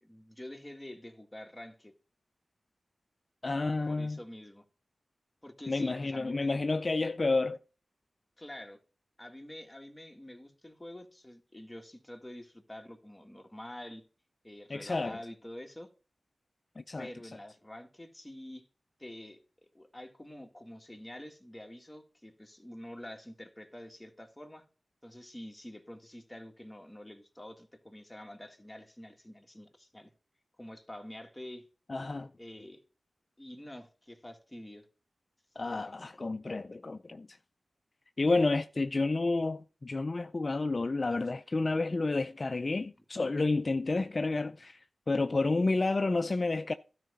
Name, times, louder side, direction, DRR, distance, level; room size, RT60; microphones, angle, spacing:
voice 1, 0.0-1.9 3.9-4.7 5.4-6.6 7.0-7.1 8.4-8.8 9.2-14.0 14.4-15.9 17.0-18.7 19.0-24.7 25.0-30.1 30.6-31.7 32.4-32.8 33.4-34.9, left 1 dB, 15° left, 1.9 m, -47 dB
voice 2, 3.4-4.2 5.7-7.6 14.7-15.2 16.8-17.1 31.9-32.3 35.6-37.3 38.2-46.7, left 3 dB, 50° left, 0.4 m, -30 dB
12.5 x 4.8 x 6.7 m
cardioid pair, 50°, 0 cm